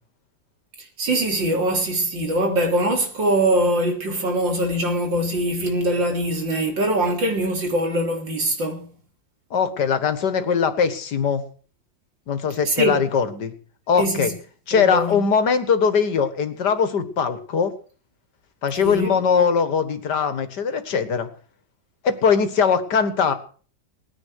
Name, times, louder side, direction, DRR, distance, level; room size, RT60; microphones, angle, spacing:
voice 1, 1.0-8.8 12.7-13.0 14.0-14.3 14.7-15.2 18.8-19.1, right 1 dB, 75° right, 4.2 m, -22 dB
voice 2, 9.5-11.4 12.3-13.5 13.9-14.3 14.7-17.7 18.6-21.3 22.0-23.3, left 6 dB, 65° left, 2.1 m, -21 dB
19.0 x 10.0 x 6.4 m
omnidirectional pair, 2.0 m